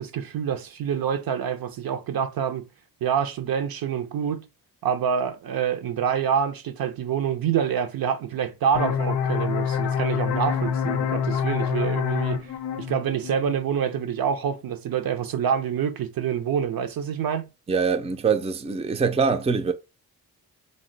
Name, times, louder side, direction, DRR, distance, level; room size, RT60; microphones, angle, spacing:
voice 1, 0.0-2.7 3.0-4.5 4.8-17.5, right 8 dB, 65° right, 0.6 m, -26 dB
sound 1, 8.7-14.1, left 7 dB, 85° left, 0.5 m, -27 dB
voice 2, 17.7-19.7, right 5 dB, 15° right, 0.4 m, -23 dB
2.6 x 2.1 x 3.8 m
cardioid pair, 55°, 39 cm